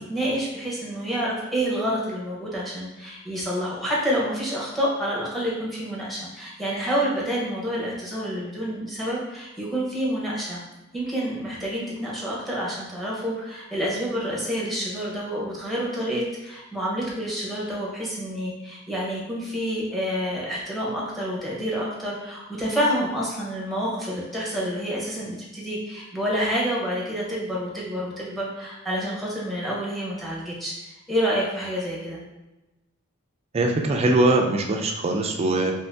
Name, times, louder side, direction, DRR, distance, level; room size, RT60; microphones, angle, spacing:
voice 1, 0.0-10.6 10.9-30.7 31.1-32.2, equal, ahead, -5 dB, 0.8 m, -28 dB
voice 2, 33.5-35.7, right 2 dB, 30° right, 2 dB, 0.4 m, -21 dB
3.0 x 2.7 x 3.3 m, 1.0 s
head